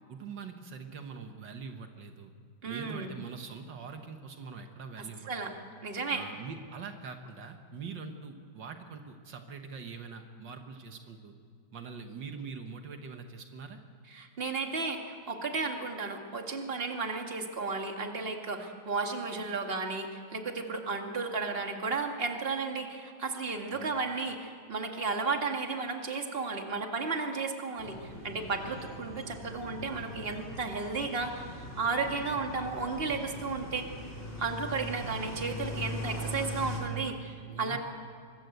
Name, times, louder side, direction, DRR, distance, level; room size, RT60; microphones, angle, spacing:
voice 1, 0.1-2.3 2.6-5.5 6.1-11.4 11.7-13.8 23.7-23.9 37.5-37.8, right 5 dB, 75° right, 5 dB, 2.0 m, -43 dB
voice 2, 2.6-3.1 5.3-5.5 5.8-6.2 14.1-33.9 34.4-37.8, right 4 dB, 30° right, 3 dB, 2.2 m, -33 dB
sound 1, 27.8-36.8, left 1 dB, 35° left, 4.3 m, -41 dB
24.5 x 21.0 x 8.0 m, 2.2 s
omnidirectional pair, 2.0 m